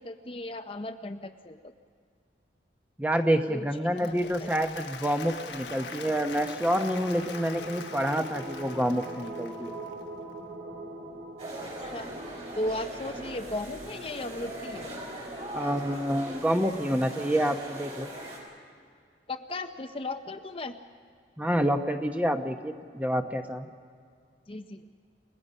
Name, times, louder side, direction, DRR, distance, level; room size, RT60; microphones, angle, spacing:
voice 1, 0.0-1.7 3.5-4.5 11.8-12.1 12.5-14.9 19.3-20.8 24.5-24.8, left 2 dB, 30° left, 7 dB, 0.6 m, -36 dB
voice 2, 3.0-9.7 15.5-18.1 21.4-23.7, equal, 10° right, 6 dB, 0.9 m, -28 dB
Applause, 3.8-10.0, left 5 dB, 75° left, 1.2 m, -44 dB
sound 1, 4.0-17.1, right 1 dB, 75° right, 3.9 m, -44 dB
sound 2, 11.4-18.4, right 1 dB, 35° right, 5.3 m, -41 dB
29.0 x 19.0 x 5.5 m, 2.2 s
head